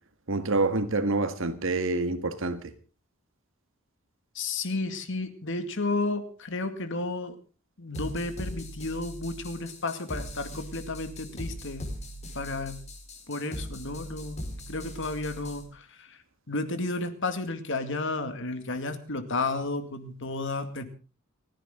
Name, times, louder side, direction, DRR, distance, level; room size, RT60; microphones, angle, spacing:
voice 1, 0.3-2.7, right 3 dB, 65° right, 1.8 m, -27 dB
voice 2, 4.3-7.4 7.8-11.9 12.3-12.8 13.3-14.4 14.7-16.2 16.5-20.9, left 3 dB, 60° left, 2.3 m, -32 dB
sound 1, 7.9-15.6, equal, 35° left, 5.1 m, -40 dB
30.0 x 10.0 x 3.8 m
head